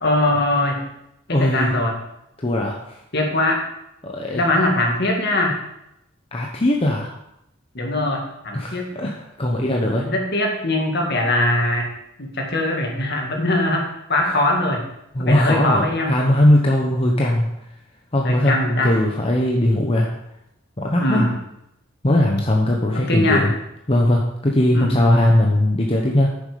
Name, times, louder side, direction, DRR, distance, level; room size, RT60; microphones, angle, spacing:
voice 1, 0.0-0.9 1.3-2.0 3.1-3.6 4.3-5.6 7.7-8.9 10.0-11.9 12.2-14.8 15.2-16.2 18.2-19.0 21.0-21.4 22.9-23.5 24.7-25.0, left 1 dB, 55° left, 1 dB, 2.0 m, -21 dB
voice 2, 1.3-1.7 2.4-2.8 4.0-4.4 6.3-7.1 8.5-10.1 14.2-14.4 15.1-17.5 18.1-18.6 18.8-20.1 20.8-21.2 22.0-23.5 23.9-26.3, left 1 dB, 30° left, -1 dB, 1.0 m, -19 dB
9.3 x 7.1 x 5.1 m, 0.82 s
head